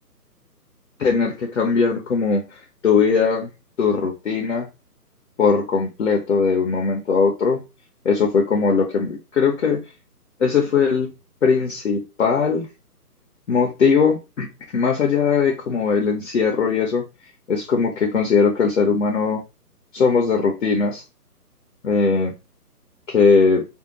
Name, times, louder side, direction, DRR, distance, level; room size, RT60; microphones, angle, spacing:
voice 1, 1.0-2.4 2.8-3.5 3.8-4.7 5.4-7.6 8.0-9.8 10.4-11.1 11.4-12.7 13.5-14.5 14.7-17.0 17.5-19.4 19.9-21.0 21.8-22.3 23.1-23.7, left 5 dB, 55° left, 0.6 m, -19 dB
2.6 x 2.0 x 2.9 m
hypercardioid pair, 170°, 48 cm